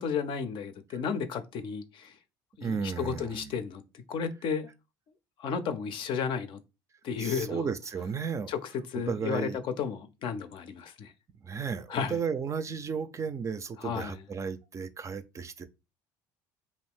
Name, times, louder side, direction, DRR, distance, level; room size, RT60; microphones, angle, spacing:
voice 1, 0.0-2.1 2.6-3.8 4.1-4.7 5.4-6.6 7.0-7.7 8.5-8.6 8.9-11.1 11.9-12.2 13.8-14.2, left 6 dB, 55° left, 0.5 m, -33 dB
voice 2, 2.6-3.5 7.2-8.5 9.1-9.6 11.4-15.6, right 6 dB, 30° right, 0.4 m, -34 dB
2.6 x 2.5 x 3.4 m
hypercardioid pair, 80°, 10 cm